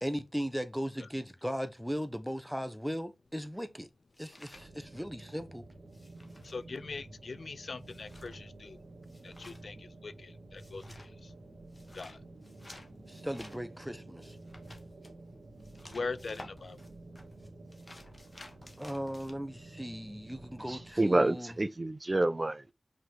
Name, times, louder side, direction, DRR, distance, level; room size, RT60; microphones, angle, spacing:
voice 1, 0.0-3.9 4.2-5.7 13.1-14.4 18.8-21.5, equal, ahead, 1.0 m, -37 dB
sound 1, 3.3-5.4 5.7-19.3, left 1 dB, 30° left, 1.7 m, -55 dB
sound 2, 4.5-20.9, right 2 dB, 75° right, 2.7 m, -51 dB
voice 2, 6.4-8.8 9.2-11.4 11.9-12.2 15.8-16.8, left 4 dB, 75° left, 0.4 m, -42 dB
voice 3, 20.7-22.7, right 2 dB, 30° right, 0.4 m, -28 dB
5.8 x 5.1 x 3.5 m
wide cardioid pair, 80°, 0 cm